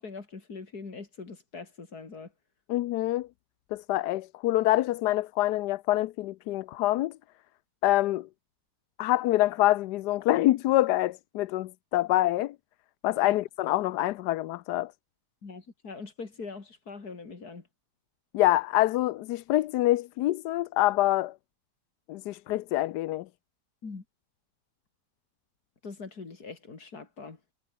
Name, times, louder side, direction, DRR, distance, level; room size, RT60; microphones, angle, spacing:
voice 1, 0.0-2.3 13.2-13.4 15.4-17.7 23.8-24.0 25.8-27.4, left 4 dB, 65° left, 3.5 m, -42 dB
voice 2, 2.7-3.3 3.7-7.1 7.8-8.3 9.0-12.5 13.0-14.9 18.3-21.3 22.1-23.3, left 16 dB, 85° left, 1.2 m, -26 dB
omnidirectional pair, 1.8 m